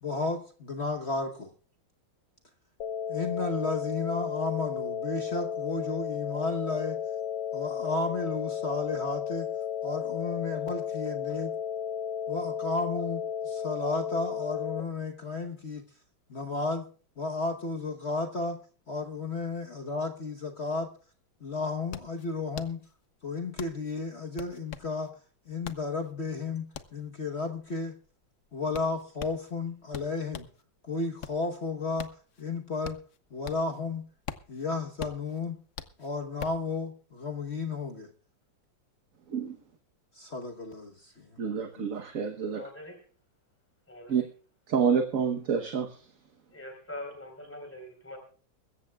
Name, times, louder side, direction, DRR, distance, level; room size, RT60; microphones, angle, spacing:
voice 1, 0.0-1.5 3.1-7.0 7.5-9.5 9.8-11.5 12.3-15.8 16.3-16.9 17.2-18.6 18.9-20.9 21.4-22.8 23.2-25.1 25.5-27.9 28.5-30.5 30.8-33.0 33.3-34.0 34.5-35.6 36.0-38.1 40.1-41.3, left 3 dB, 40° left, 1.1 m, -33 dB
sound 1, 2.8-14.8, left 8 dB, 80° left, 1.7 m, -33 dB
sound 2, 21.0-21.1 21.3-30.6 31.0-33.8 34.1-36.7, left 8 dB, 55° left, 0.8 m, -43 dB
voice 2, 41.4-42.6 44.1-44.2 44.7-46.0, right 6 dB, 50° right, 1.3 m, -28 dB
voice 3, 42.5-43.0 43.9-44.3 46.5-48.2, left 1 dB, 5° left, 4.0 m, -43 dB
23.0 x 14.0 x 2.3 m
omnidirectional pair, 2.1 m